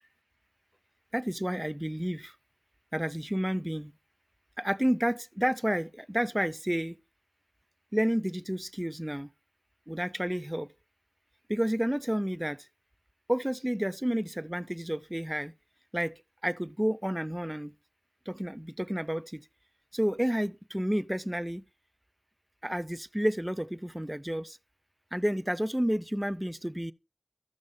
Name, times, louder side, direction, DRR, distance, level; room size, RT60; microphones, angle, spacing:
voice 1, 1.1-2.3 2.9-3.9 4.6-7.0 7.9-9.3 9.9-10.7 11.5-12.7 13.3-15.5 15.9-17.7 18.3-19.4 19.9-21.6 22.6-24.6 25.1-26.9, equal, 10° right, 0.5 m, -30 dB
13.5 x 6.4 x 3.3 m
wide cardioid pair, 45°, 0 cm